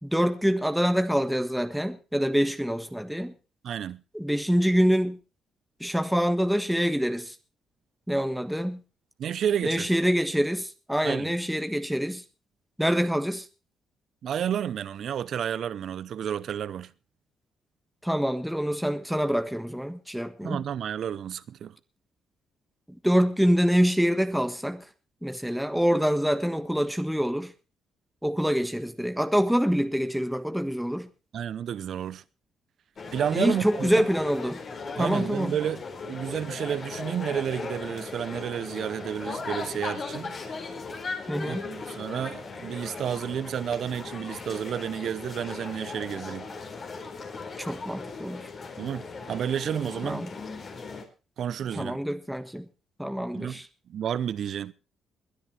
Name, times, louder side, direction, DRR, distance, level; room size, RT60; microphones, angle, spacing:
voice 1, 0.0-3.3 4.1-5.2 5.8-7.3 8.1-8.8 9.6-12.2 12.8-13.5 18.0-20.6 23.0-24.8 25.2-27.5 28.2-31.1 33.3-34.6 35.0-35.6 41.3-41.7 47.6-48.5 50.0-50.3 51.7-52.6 53.0-53.7, equal, ahead, 1.5 m, -25 dB
voice 2, 3.6-4.0 9.2-9.9 11.0-11.4 14.2-16.9 20.4-21.8 31.3-32.2 33.1-34.1 35.0-40.4 41.5-46.5 48.8-50.3 51.4-52.0 53.3-53.6 53.9-54.7, right 9 dB, 65° right, 0.7 m, -31 dB
sound 1, 33.0-51.0, left 4 dB, 45° left, 4.1 m, -38 dB
21.5 x 9.9 x 4.4 m
cardioid pair, 90°, 0 cm